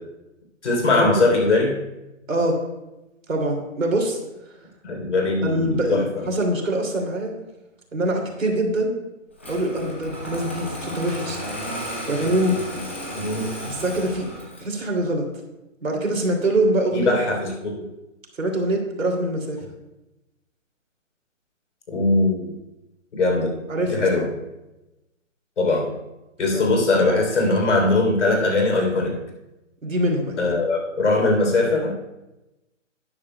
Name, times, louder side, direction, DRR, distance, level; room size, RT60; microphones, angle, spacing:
voice 1, 0.6-1.7 4.8-6.2 13.1-13.7 16.9-17.8 21.9-22.5 23.1-23.5 23.9-24.3 25.6-25.9 26.4-29.1 30.4-31.9, left 2 dB, 60° left, 0 dB, 3.3 m, -21 dB
voice 2, 2.3-2.6 3.3-4.2 5.4-7.4 7.9-8.9 9.5-11.4 12.1-12.6 13.7-14.3 14.6-15.3 15.8-17.2 18.4-19.6 23.7-24.2 26.5-26.7 29.8-30.5, right 1 dB, 80° right, 1 dB, 2.6 m, -24 dB
Engine starting, 9.4-14.8, equal, 10° left, 0.4 m, -33 dB
13.0 x 9.8 x 2.2 m, 0.98 s
hypercardioid pair, 150°, 39 cm